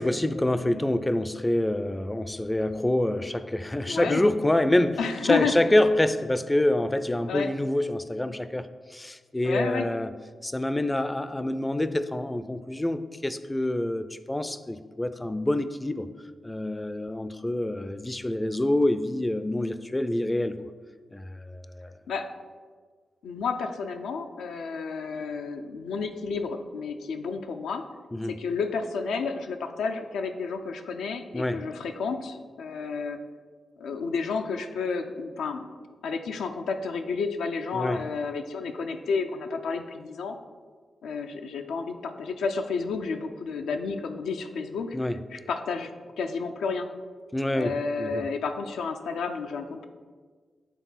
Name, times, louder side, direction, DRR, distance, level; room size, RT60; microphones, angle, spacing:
voice 1, 0.0-10.1 10.4-16.1 16.4-20.6 21.1-21.9 28.1-28.3 31.3-31.6 37.7-38.0 44.9-45.2 47.3-48.2, left 1 dB, 20° left, 12 dB, 0.4 m, -26 dB
voice 2, 3.9-4.2 5.0-5.5 7.3-7.5 9.4-9.9 22.1-22.3 23.2-27.8 28.3-33.2 33.8-35.7 36.0-40.4 41.0-45.0 45.3-45.9 46.2-46.9 47.5-49.9, left 5 dB, 90° left, 5 dB, 0.4 m, -31 dB
8.2 x 3.6 x 4.0 m, 1.6 s
cardioid pair, 50°, 0 cm